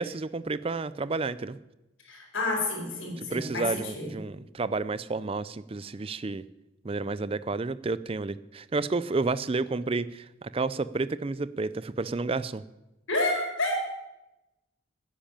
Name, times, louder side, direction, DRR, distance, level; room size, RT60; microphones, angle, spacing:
voice 1, 0.0-1.6 3.2-6.4 6.8-12.6, right 3 dB, 25° right, 16 dB, 0.4 m, -31 dB
voice 2, 2.0-4.1 13.1-13.8, left 2 dB, 70° left, 1 dB, 4.5 m, -29 dB
11.0 x 10.0 x 8.7 m, 0.99 s
head